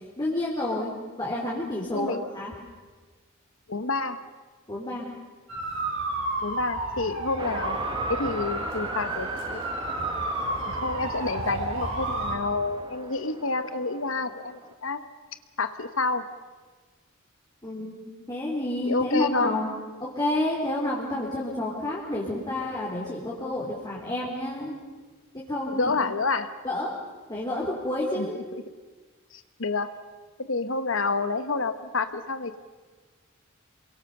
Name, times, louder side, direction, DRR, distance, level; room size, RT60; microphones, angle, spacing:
voice 1, 0.2-0.9 1.2-2.5 4.7-5.1 17.6-19.7 20.0-24.7 25.3-26.0 26.6-26.9 27.3-28.3, left 1 dB, 20° left, -4 dB, 3.8 m, -29 dB
voice 2, 1.9-2.2 3.7-4.2 6.4-7.8 8.1-9.6 10.7-15.0 15.6-16.3 18.8-19.6 25.7-26.5 28.1-28.3 29.3-29.9 30.4-32.6, left 3 dB, 65° left, 10 dB, 1.2 m, -28 dB
sound 1, 5.5-12.3, right 2 dB, 65° right, 7.0 m, -31 dB
sound 2, 7.4-14.7, right 2 dB, 25° right, 1.4 m, -39 dB
28.0 x 23.0 x 6.8 m, 1.4 s
head